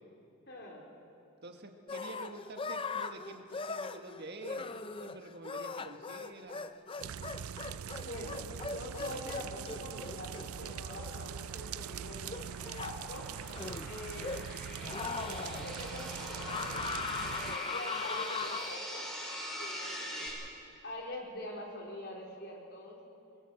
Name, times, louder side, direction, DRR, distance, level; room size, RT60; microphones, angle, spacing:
voice 1, 0.5-0.9 8.0-12.5 12.8-13.5 13.9-14.6 15.1-19.0 19.6-20.3 20.8-23.0, left 1 dB, 50° left, -1 dB, 4.2 m, -44 dB
voice 2, 1.4-6.7, right 2 dB, 50° right, 4 dB, 1.7 m, -48 dB
sound 1, 1.9-11.8 12.3-13.0 13.5-14.6 14.8-15.7 16.5-18.8, left 4 dB, 25° left, 0.5 m, -40 dB
sound 2, 7.0-17.6, right 8 dB, 85° right, 0.4 m, -42 dB
sound 3, 9.6-20.3, equal, 5° left, 6.1 m, -44 dB
22.0 x 22.0 x 7.7 m, 2.7 s
head